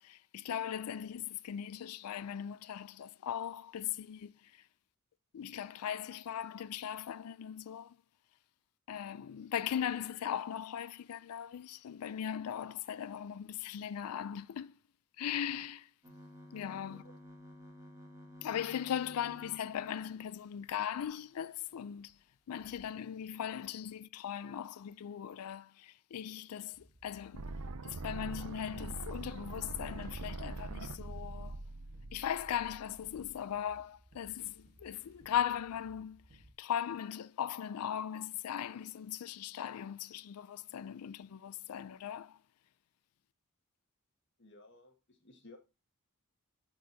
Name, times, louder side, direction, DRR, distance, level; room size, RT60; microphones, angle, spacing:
voice 1, 0.0-4.3 5.3-8.0 8.9-14.8 15.2-15.9 16.5-17.0 18.4-22.2 22.5-27.5 27.8-31.6 32.1-36.2 36.6-42.4, left 9 dB, 75° left, 0.4 m, -39 dB
sound 1, 16.0-21.1 21.6-21.7 22.0-22.2 22.6-22.9, equal, 15° right, 2.0 m, -54 dB
sound 2, 26.7-36.5, right 1 dB, 45° right, 1.4 m, -62 dB
sound 3, 27.3-33.3, right 2 dB, 80° right, 0.6 m, -43 dB
voice 2, 44.4-45.6, left 2 dB, 55° left, 1.7 m, -57 dB
11.0 x 4.5 x 2.7 m
head